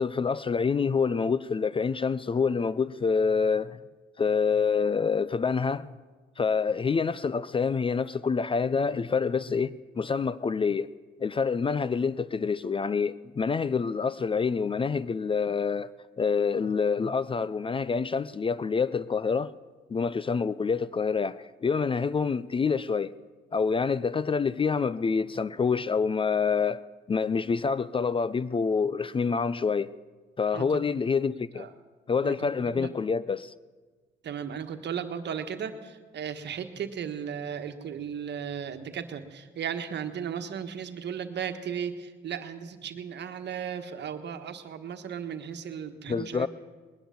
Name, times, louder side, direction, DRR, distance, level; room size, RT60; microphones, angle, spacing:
voice 1, 0.0-3.8 4.2-5.9 6.4-10.9 11.2-15.9 16.2-19.5 19.9-23.1 23.5-26.8 27.1-29.9 30.4-31.7 32.1-33.5 46.1-46.5, left 5 dB, 25° left, 0.4 m, -27 dB
voice 2, 32.2-32.9 34.2-46.5, right 8 dB, 60° right, 1.4 m, -36 dB
20.5 x 10.0 x 7.0 m
cardioid pair, 90°, 20 cm